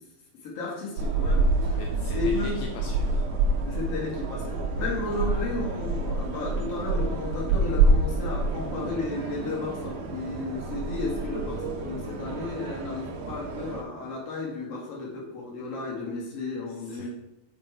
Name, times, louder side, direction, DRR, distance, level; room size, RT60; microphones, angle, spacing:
voice 1, 0.4-1.8 2.1-2.6 3.6-17.1, left 3 dB, 40° left, -4 dB, 2.7 m, -33 dB
sound 1, 1.0-13.8, right 3 dB, 85° right, 1.7 m, -27 dB
voice 2, 1.8-3.3 16.7-17.1, left 5 dB, 80° left, 3 dB, 2.3 m, -41 dB
7.5 x 5.2 x 4.7 m, 0.91 s
omnidirectional pair, 4.9 m